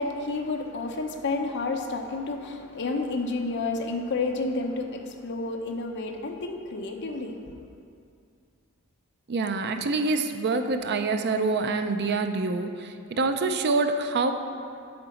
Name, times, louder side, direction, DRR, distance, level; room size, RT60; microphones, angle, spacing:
voice 1, 0.0-7.4, left 3 dB, 55° left, 4 dB, 0.7 m, -30 dB
voice 2, 9.3-14.3, right 3 dB, 50° right, 7 dB, 0.5 m, -26 dB
8.7 x 3.9 x 7.0 m, 2.3 s
head